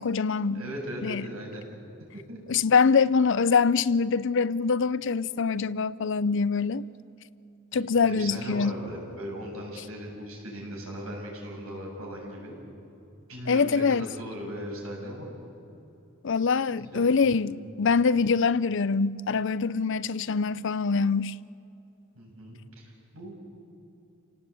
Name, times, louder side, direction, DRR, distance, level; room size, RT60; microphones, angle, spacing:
voice 1, 0.0-0.6 1.0-1.3 2.5-6.9 7.7-8.8 13.5-14.1 16.2-21.3, left 5 dB, 60° left, 0.6 m, -24 dB
voice 2, 0.5-2.4 7.7-12.6 13.3-15.3 16.9-17.6 22.2-23.3, equal, 85° right, 7.4 m, -39 dB
29.5 x 18.5 x 8.4 m
head